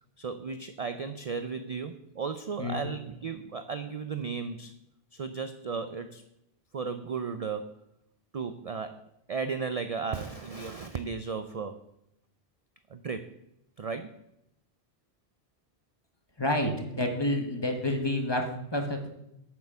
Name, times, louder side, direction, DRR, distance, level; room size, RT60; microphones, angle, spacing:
voice 1, 0.2-4.7 5.1-6.3 6.7-7.8 8.3-11.8 12.9-13.3 13.8-14.2, right 5 dB, 45° right, 9 dB, 0.5 m, -35 dB
voice 2, 16.4-19.1, left 1 dB, 25° left, 4 dB, 1.4 m, -29 dB
8.6 x 6.5 x 6.9 m, 0.81 s
omnidirectional pair, 1.1 m